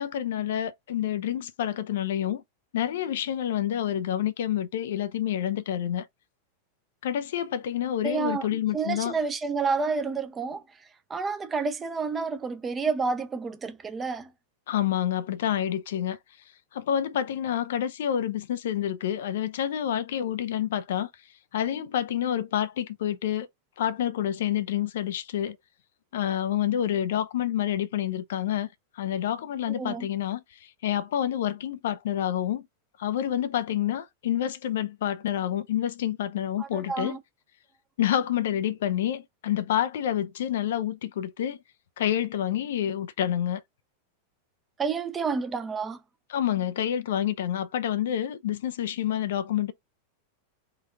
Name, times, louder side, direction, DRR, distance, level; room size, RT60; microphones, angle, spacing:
voice 1, 0.0-2.4 2.7-6.1 7.0-9.2 14.7-16.2 16.7-21.1 21.5-23.5 23.8-25.6 26.1-28.7 29.0-32.6 33.0-37.2 38.0-41.6 42.0-43.6 46.3-49.7, left 10 dB, 60° left, 0.4 m, -28 dB
voice 2, 8.0-10.6 11.1-14.3 29.7-30.1 36.6-37.2 44.8-46.0, right 4 dB, 20° right, 0.6 m, -29 dB
3.8 x 2.4 x 3.5 m
figure-of-eight pair, 90°, 0 cm